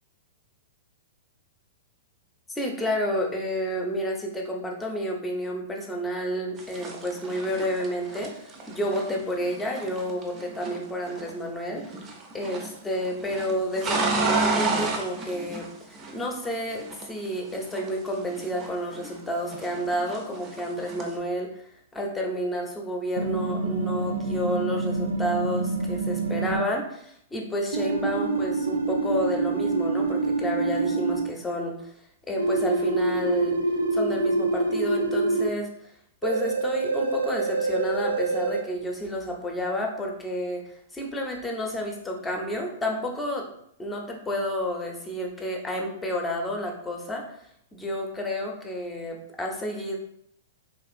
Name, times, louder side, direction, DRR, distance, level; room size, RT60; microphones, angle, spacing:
voice 1, 2.6-11.8 12.3-21.5 21.9-31.9 32.3-33.6 33.9-35.7 36.2-40.6 40.9-43.5 43.8-47.2 47.7-50.0, equal, 15° left, 1 dB, 0.6 m, -30 dB
sound 1, 6.6-11.5 11.8-12.8 13.0-16.5 16.8-19.2 19.5-21.2, right 3 dB, 30° right, 0.5 m, -31 dB
sound 2, 23.2-26.6 27.7-31.2 32.4-35.5 36.2-38.6, right 3 dB, 85° right, 0.3 m, -26 dB
2.9 x 2.4 x 2.4 m, 0.70 s
hypercardioid pair, 115°, 0 cm